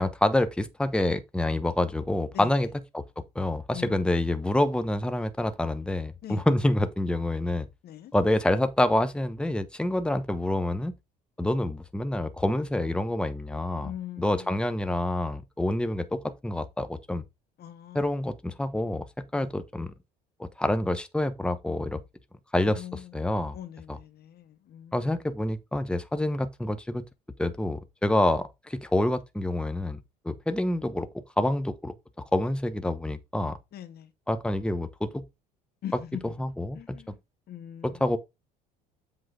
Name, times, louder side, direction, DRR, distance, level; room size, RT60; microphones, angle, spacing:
voice 1, 0.0-3.0 3.3-7.7 8.1-10.9 11.4-13.9 14.2-17.2 17.9-19.9 20.4-22.0 22.5-23.6 23.9-24.0 24.9-27.0 27.4-31.9 32.3-33.6 34.3-35.2 36.2-37.0 37.8-38.2, left 1 dB, 5° left, 1.0 m, -27 dB
voice 2, 3.7-4.3 6.2-6.4 7.8-8.1 13.8-14.5 17.6-18.0 19.3-19.5 22.6-23.1 23.5-25.1 33.7-34.1 35.8-36.3 36.7-37.2 37.5-38.0, left 11 dB, 55° left, 0.9 m, -41 dB
7.8 x 3.7 x 5.0 m
hypercardioid pair, 70°, 19 cm